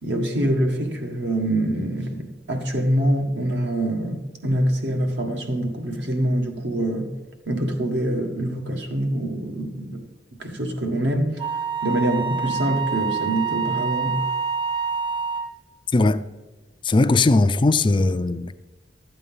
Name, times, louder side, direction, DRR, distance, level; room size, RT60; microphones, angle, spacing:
voice 1, 0.0-7.1 7.5-10.1 10.4-11.4 11.8-14.2, right 1 dB, 70° right, 1.6 m, -25 dB
Wind instrument woodwind instrument, 11.4-15.6, right 6 dB, 30° right, 0.9 m, -26 dB
voice 2, 15.9-16.2 16.8-18.5, left 2 dB, 30° left, 0.4 m, -19 dB
12.0 x 8.2 x 5.5 m
head